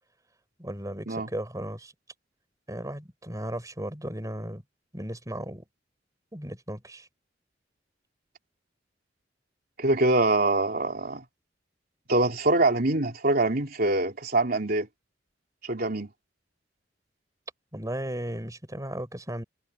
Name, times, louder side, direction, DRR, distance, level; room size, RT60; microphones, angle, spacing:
voice 1, 0.6-1.9 2.7-4.6 4.9-5.7 6.3-7.1 17.7-19.4, right 1 dB, 20° right, 5.1 m, -35 dB
voice 2, 9.8-11.2 12.1-14.9 15.6-16.1, right 2 dB, 55° right, 3.6 m, -24 dB
head